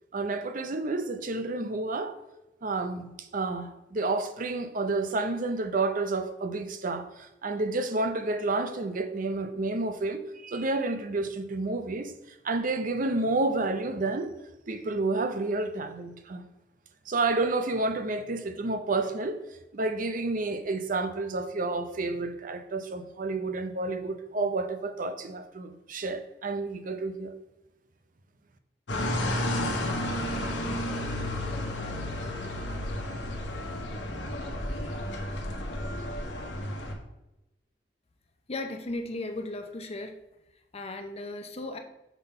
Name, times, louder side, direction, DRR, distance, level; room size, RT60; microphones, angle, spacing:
voice 1, 0.1-2.1 2.6-12.1 12.4-14.3 14.7-16.5 17.1-19.4 19.7-27.3, right 3 dB, 50° right, 0.6 m, -30 dB
sound 1, 28.9-36.9, left 1 dB, 90° left, 1.1 m, -32 dB
voice 2, 38.5-40.1 40.7-41.8, left 2 dB, 35° left, 0.7 m, -36 dB
6.1 x 3.6 x 5.5 m
head